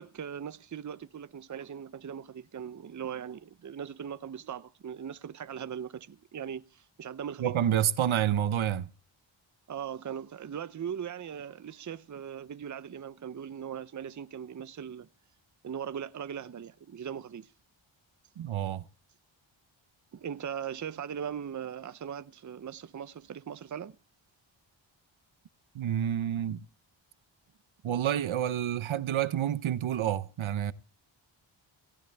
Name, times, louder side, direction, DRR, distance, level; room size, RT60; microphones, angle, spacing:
voice 1, 0.0-7.6 9.7-15.1 15.6-17.5 20.1-24.0, right 8 dB, 40° right, 0.7 m, -39 dB
voice 2, 7.4-8.9 18.4-18.8 25.7-26.7 27.8-30.7, right 10 dB, 75° right, 0.8 m, -28 dB
17.0 x 16.0 x 3.4 m
cardioid pair, 70°, 48 cm